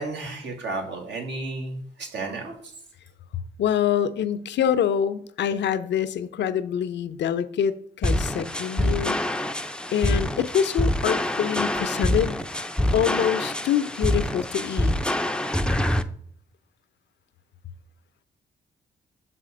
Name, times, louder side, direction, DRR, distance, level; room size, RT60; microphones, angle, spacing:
voice 1, 0.0-2.7, right 3 dB, 65° right, 2 dB, 1.9 m, -33 dB
voice 2, 3.6-9.2 9.9-12.4 12.9-15.2, left 9 dB, 65° left, 13 dB, 0.5 m, -25 dB
sound 1, 8.0-16.0, left 1 dB, 5° left, 0.5 m, -25 dB
6.3 x 4.2 x 4.9 m, 0.63 s
supercardioid pair, 50°, 19 cm